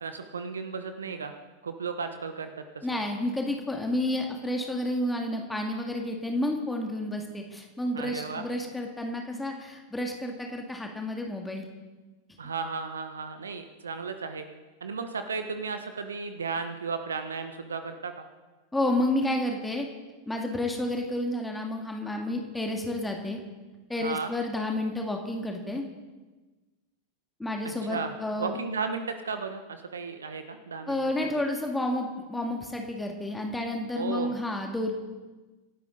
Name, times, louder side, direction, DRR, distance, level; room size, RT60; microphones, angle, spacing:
voice 1, 0.0-1.3 1.6-3.0 7.9-8.4 12.4-14.4 14.8-18.3 24.0-24.3 27.8-31.0 31.3-31.4 33.9-34.3, right 5 dB, 70° right, 8 dB, 1.1 m, -34 dB
voice 2, 2.8-11.7 18.7-19.9 20.3-23.4 23.9-25.8 27.4-28.6 30.9-34.9, left 1 dB, 5° left, 2 dB, 2.2 m, -30 dB
27.5 x 12.5 x 4.0 m, 1.2 s
figure-of-eight pair, 90°, 0 cm